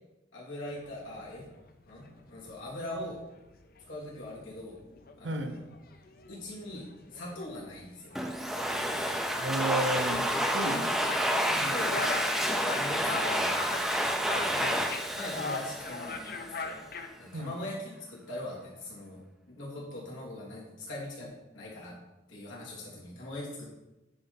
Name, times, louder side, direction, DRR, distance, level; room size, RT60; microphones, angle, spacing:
voice 1, 0.3-1.4 1.8-3.2 3.9-4.8 5.2-5.6 6.3-6.9 7.1-8.3 9.0-9.3 10.6-10.8 11.5-14.7 15.1-16.7 17.2-19.2 19.5-22.0 22.3-23.7, left 1 dB, 90° left, -5 dB, 3.0 m, -41 dB
sound 1, 0.8-1.6 1.9-2.4 2.7-17.1, left 4 dB, 50° left, 0.7 m, -41 dB
voice 2, 5.2-5.6 9.3-10.9 11.6-11.8 14.5-14.9 17.3-17.5, right 1 dB, 70° right, 7 dB, 0.8 m, -33 dB
Domestic sounds home sounds, 8.2-16.6, equal, ahead, 0.5 m, -30 dB
9.4 x 5.1 x 4.1 m, 0.98 s
head